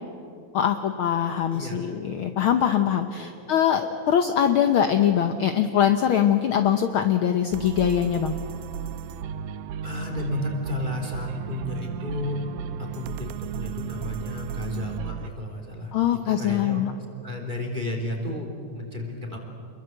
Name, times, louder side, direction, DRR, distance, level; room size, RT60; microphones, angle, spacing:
voice 1, 0.5-8.3 15.9-16.9, left 9 dB, 75° left, 7 dB, 1.2 m, -22 dB
sound 1, 7.5-15.3, right 8 dB, 80° right, 2.3 m, -34 dB
voice 2, 9.8-12.4 12.8-16.8 17.2-19.4, left 1 dB, 15° right, 1 dB, 3.4 m, -32 dB
28.0 x 22.0 x 7.8 m, 2.5 s
omnidirectional pair, 3.5 m